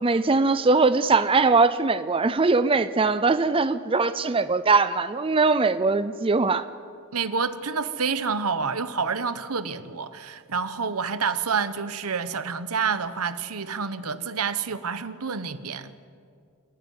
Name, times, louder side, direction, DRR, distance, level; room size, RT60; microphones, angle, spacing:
voice 1, 0.0-6.7, right 3 dB, 25° right, 0.5 m, -21 dB
voice 2, 7.1-15.9, right 5 dB, 80° right, 1.0 m, -28 dB
27.5 x 12.0 x 9.6 m
head